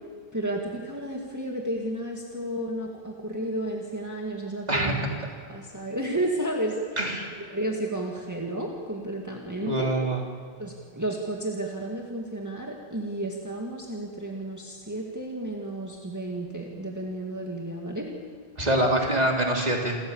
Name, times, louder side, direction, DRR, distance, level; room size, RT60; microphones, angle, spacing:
voice 1, 0.3-5.0 5.5-7.1 7.4-9.9 10.6-18.1, right 1 dB, 15° right, -1 dB, 2.1 m, -32 dB
voice 2, 4.7-5.1 7.0-7.3 9.6-10.2 18.6-20.0, right 1 dB, 40° right, 0 dB, 3.5 m, -25 dB
29.0 x 14.0 x 7.3 m, 2.1 s
omnidirectional pair, 1.1 m